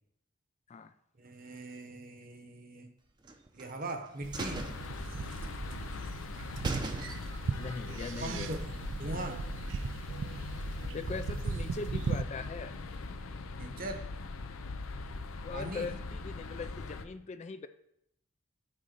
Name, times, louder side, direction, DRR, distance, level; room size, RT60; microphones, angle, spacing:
voice 1, 1.2-2.9 3.5-4.7 8.2-8.7 9.0-9.4 13.5-14.1 15.5-16.0, right 1 dB, 45° right, 6 dB, 1.0 m, -40 dB
sound 1, 3.2-3.9 4.3-5.6 5.9-6.0 6.3-6.4 6.6-7.5 7.9-8.0, right 2 dB, 20° right, 0.6 m, -41 dB
sound 2, 4.2-12.2, right 5 dB, 65° right, 0.4 m, -38 dB
sound 3, 4.3-17.0, left 3 dB, 90° left, 0.6 m, -41 dB
voice 2, 7.6-8.5 9.1-9.2 10.9-12.7 15.4-17.7, left 4 dB, 35° left, 11 dB, 0.3 m, -40 dB
9.1 x 3.8 x 6.5 m, 0.76 s
head